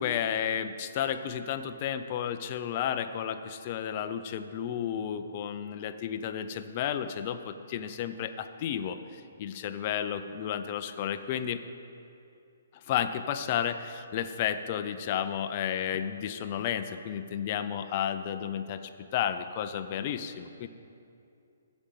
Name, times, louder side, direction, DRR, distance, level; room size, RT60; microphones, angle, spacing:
voice 1, 0.0-11.6 12.9-18.8 19.1-20.7, left 9 dB, 25° left, 9 dB, 0.4 m, -32 dB
14.5 x 5.1 x 6.8 m, 2.6 s
hypercardioid pair, 175°, 0 cm